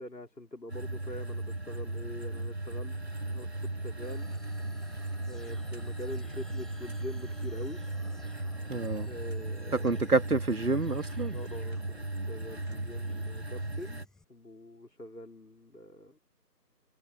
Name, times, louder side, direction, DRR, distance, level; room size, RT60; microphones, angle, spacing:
voice 1, 0.0-3.0 3.3-4.3 5.3-7.8 9.0-10.1 11.3-16.2, left 1 dB, 80° left, 4.4 m, -44 dB
sound 1, 0.7-14.1, right 2 dB, 45° right, 0.6 m, -36 dB
sound 2, 4.0-14.2, left 2 dB, ahead, 7.0 m, -56 dB
voice 2, 8.7-9.1 9.7-11.4, right 3 dB, 65° right, 2.4 m, -28 dB
figure-of-eight pair, 160°, 48 cm